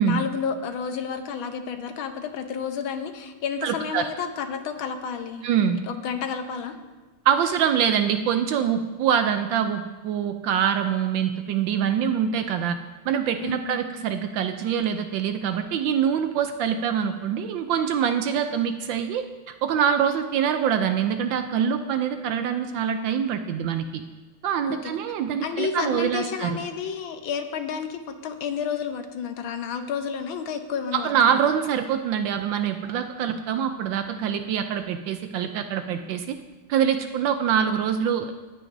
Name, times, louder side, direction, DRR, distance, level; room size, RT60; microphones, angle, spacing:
voice 1, 0.0-5.5 5.9-6.8 13.4-13.8 24.6-24.9 25.4-31.5, left 6 dB, 70° left, 7 dB, 1.5 m, -31 dB
voice 2, 3.6-4.1 5.4-5.8 7.2-12.8 13.1-24.0 24.4-26.6 30.9-36.4 36.7-38.3, right 8 dB, 75° right, 8 dB, 1.2 m, -24 dB
18.0 x 8.9 x 2.6 m, 1.2 s
omnidirectional pair, 2.3 m